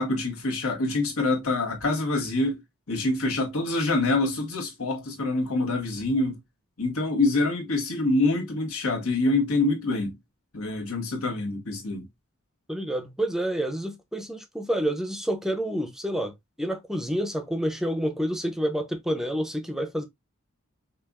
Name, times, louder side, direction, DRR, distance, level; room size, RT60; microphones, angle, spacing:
voice 1, 0.0-2.6 2.9-6.4 6.8-10.1 10.5-12.1, left 2 dB, 80° left, 1.5 m, -26 dB
voice 2, 12.7-20.1, equal, ahead, 0.6 m, -28 dB
5.5 x 2.5 x 2.3 m
head